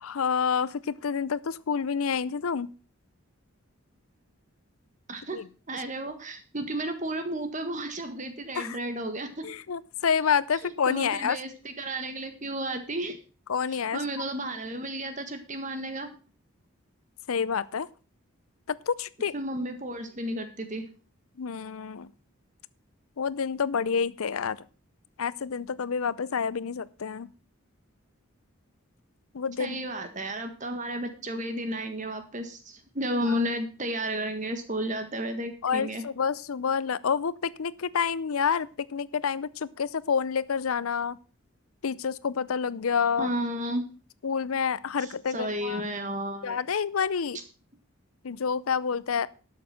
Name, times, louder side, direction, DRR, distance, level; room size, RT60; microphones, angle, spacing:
voice 1, 0.0-2.7 5.3-5.4 8.6-8.8 9.4-11.4 13.5-14.0 17.3-17.9 18.7-19.3 21.4-22.1 23.2-24.6 25.2-27.3 29.3-29.8 35.6-41.2 41.8-43.3 44.2-45.8 46.4-47.4 48.2-49.3, left 6 dB, 85° left, 19 dB, 0.6 m, -28 dB
voice 2, 5.1-5.4 5.7-9.5 10.5-13.2 13.7-16.1 19.3-20.9 29.6-36.0 43.0-43.8 45.0-46.6, right 1 dB, 35° right, 8 dB, 1.7 m, -33 dB
12.5 x 6.7 x 5.7 m, 0.36 s
head